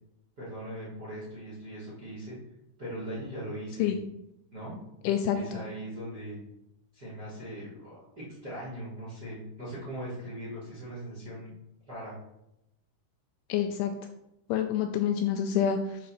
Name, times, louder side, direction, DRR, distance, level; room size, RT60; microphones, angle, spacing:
voice 1, 0.4-2.4 2.8-3.9 4.5-4.7 5.3-6.4 6.9-11.5 11.9-12.1, right 1 dB, 40° right, -7 dB, 1.4 m, -40 dB
voice 2, 5.0-5.4 13.5-13.9 14.5-16.0, left 9 dB, 85° left, 5 dB, 2.7 m, -27 dB
8.6 x 3.7 x 5.7 m, 0.85 s
omnidirectional pair, 5.7 m